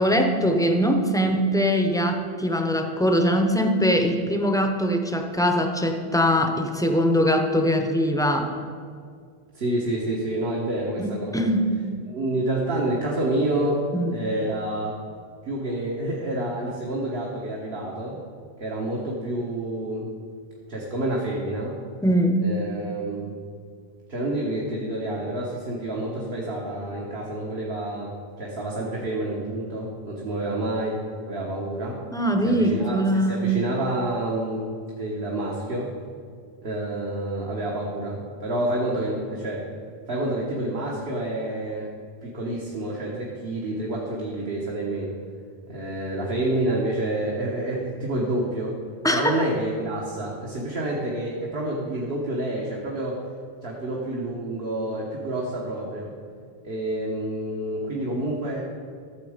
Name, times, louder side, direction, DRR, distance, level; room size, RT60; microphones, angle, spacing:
voice 1, 0.0-8.5 11.0-11.8 13.9-14.1 22.0-22.5 32.1-33.5 49.0-49.4, equal, 5° left, 4 dB, 0.7 m, -22 dB
voice 2, 9.5-11.5 12.0-13.8 14.1-15.0 15.4-18.2 18.6-20.1 20.7-21.8 22.4-23.3 24.1-32.0 32.4-34.7 35.0-35.9 36.6-39.7 40.1-41.9 42.2-45.2 45.7-48.8 49.1-53.2 53.6-56.1 56.6-58.6, right 1 dB, 70° right, -3 dB, 1.5 m, -28 dB
13.5 x 7.2 x 5.0 m, 2.2 s
omnidirectional pair, 1.1 m